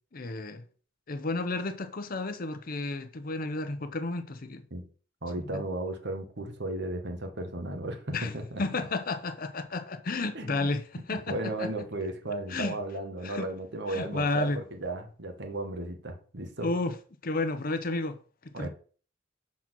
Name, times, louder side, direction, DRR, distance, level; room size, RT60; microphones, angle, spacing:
voice 1, 0.1-0.6 1.1-4.6 5.3-5.6 8.1-8.3 8.6-11.7 12.5-12.8 13.2-13.5 13.9-14.6 16.6-16.9 17.2-18.2 18.6-18.7, left 2 dB, 50° left, 0.8 m, -32 dB
voice 2, 5.2-8.6 10.3-10.7 11.1-16.7 18.5-18.7, right 2 dB, 60° right, 1.4 m, -35 dB
5.9 x 4.2 x 6.1 m
head